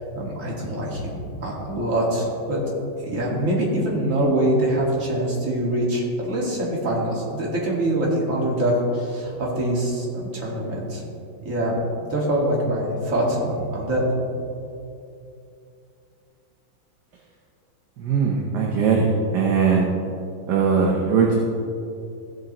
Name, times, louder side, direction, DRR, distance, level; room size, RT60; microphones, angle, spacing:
voice 1, 0.1-2.6 3.0-11.0 11.4-11.8 12.1-14.0, right 1 dB, 45° right, -4 dB, 2.3 m, -24 dB
voice 2, 18.0-19.9 20.5-21.3, right 5 dB, 65° right, -2 dB, 1.5 m, -20 dB
15.5 x 7.9 x 3.0 m, 2.6 s
omnidirectional pair, 2.0 m